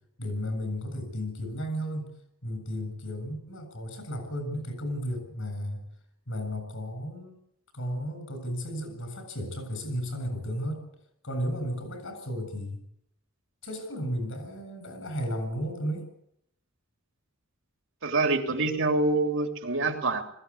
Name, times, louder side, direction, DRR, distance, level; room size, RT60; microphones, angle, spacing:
voice 1, 0.2-2.1 2.4-5.9 6.3-7.4 7.7-10.8 11.2-12.8 13.6-16.1, equal, 65° left, 8 dB, 7.8 m, -34 dB
voice 2, 18.0-20.2, right 3 dB, 65° right, 4 dB, 3.2 m, -26 dB
21.0 x 16.5 x 8.6 m, 0.74 s
head